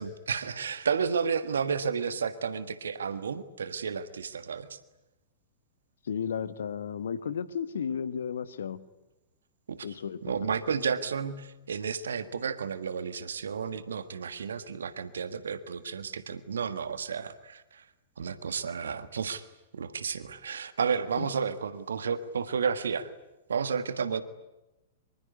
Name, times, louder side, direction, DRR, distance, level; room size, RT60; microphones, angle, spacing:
voice 1, 0.0-4.8 9.7-9.9 10.2-17.8 18.2-19.5 19.7-23.1 23.5-24.2, right 6 dB, 70° right, 12 dB, 1.5 m, -32 dB
voice 2, 6.1-8.8 9.8-10.3 21.2-21.3, left 7 dB, 65° left, 14 dB, 1.5 m, -33 dB
25.0 x 23.0 x 9.7 m, 0.99 s
figure-of-eight pair, 100°, 0 cm